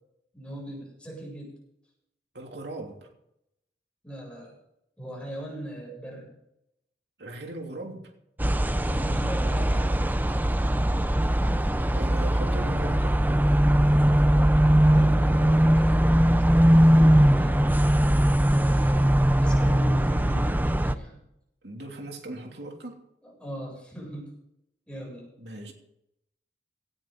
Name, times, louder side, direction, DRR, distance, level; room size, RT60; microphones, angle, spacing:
voice 1, 0.3-1.6 4.0-4.5 5.0-6.3 8.8-10.0 14.5-16.3 16.7-17.6 18.5-19.1 19.4-21.2 23.2-24.3 24.9-25.3, right 1 dB, 5° left, -2 dB, 7.9 m, -39 dB
voice 2, 2.3-3.1 7.2-8.1 11.9-13.2 21.6-23.0 25.4-25.7, right 2 dB, 70° right, 2 dB, 3.1 m, -39 dB
sound 1, 8.4-20.9, equal, 10° right, 0.7 m, -20 dB
18.0 x 13.5 x 4.1 m, 0.80 s
head